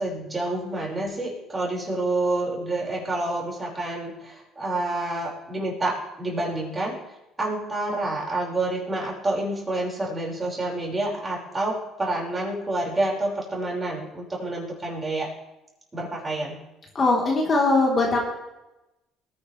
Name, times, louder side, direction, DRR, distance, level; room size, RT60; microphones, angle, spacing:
voice 1, 0.0-7.0 7.4-15.3 15.9-16.6, right 2 dB, 20° right, -3 dB, 5.4 m, -28 dB
voice 2, 16.9-18.2, left 2 dB, 35° left, -2 dB, 3.7 m, -20 dB
20.5 x 9.8 x 3.4 m, 0.97 s
supercardioid pair, 85°, 0 cm